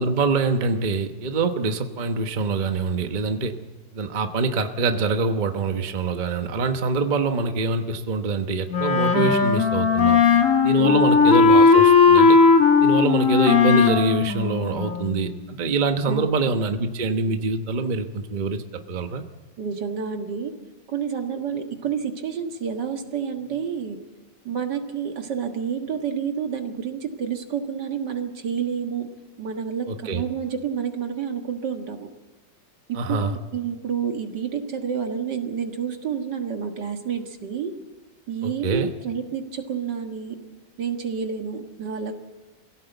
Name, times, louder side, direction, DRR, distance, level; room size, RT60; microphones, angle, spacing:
voice 1, 0.0-3.5 3.9-10.2 10.6-12.4 12.8-19.2 29.9-30.2 33.0-33.3 38.4-38.9, right 3 dB, 30° right, 7 dB, 1.0 m, -24 dB
Wind instrument woodwind instrument, 8.7-15.3, left 5 dB, 45° left, 2.0 m, -17 dB
voice 2, 10.8-11.1 16.1-16.4 19.6-20.5 20.9-24.0 24.4-29.1 29.4-32.1 32.9-37.7 38.3-40.4 40.8-42.2, right 7 dB, 70° right, 5 dB, 2.3 m, -29 dB
23.0 x 16.5 x 8.0 m, 1.2 s
omnidirectional pair, 1.9 m